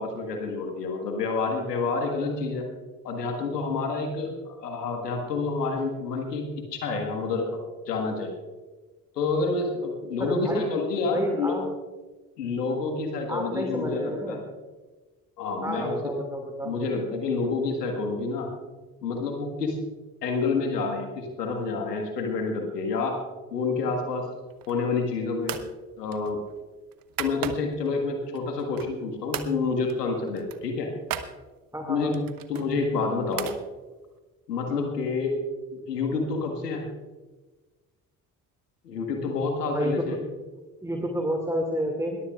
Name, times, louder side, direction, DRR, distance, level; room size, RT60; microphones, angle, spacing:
voice 1, 0.0-2.7 3.0-8.3 9.1-11.6 12.4-14.4 15.4-16.0 16.6-18.5 19.0-19.8 20.2-23.2 23.5-24.3 24.7-25.6 26.0-26.4 27.2-30.9 31.9-33.5 34.5-35.3 35.7-36.9 38.8-40.2, left 4 dB, 85° left, 3 dB, 1.6 m, -28 dB
voice 2, 10.2-10.7 11.1-11.7 13.3-14.4 15.6-16.7 31.7-32.3 39.7-40.1 40.8-42.2, equal, 5° right, 2 dB, 2.2 m, -29 dB
sound 1, 24.5-25.0 25.4-25.7 26.1-27.9 28.4-29.0 29.3-29.5 29.9-30.0 30.3-31.3 32.1-33.6, right 10 dB, 45° right, 1.1 m, -36 dB
21.0 x 15.0 x 2.4 m, 1.2 s
figure-of-eight pair, 45°, 47 cm